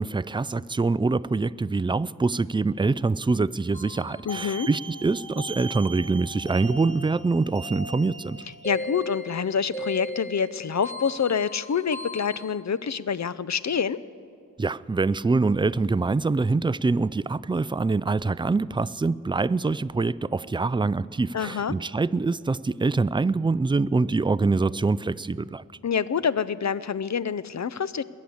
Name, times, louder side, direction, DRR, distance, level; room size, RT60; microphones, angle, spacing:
voice 1, 0.0-8.4 14.6-25.6, right 3 dB, 15° right, 17 dB, 0.3 m, -25 dB
sound 1, 3.7-12.5, equal, 25° left, 2.1 m, -38 dB
voice 2, 4.3-4.7 8.6-14.0 21.3-21.7 25.8-28.0, left 6 dB, 55° left, 16 dB, 0.5 m, -26 dB
21.5 x 8.5 x 7.9 m, 2.2 s
wide cardioid pair, 50°, 33 cm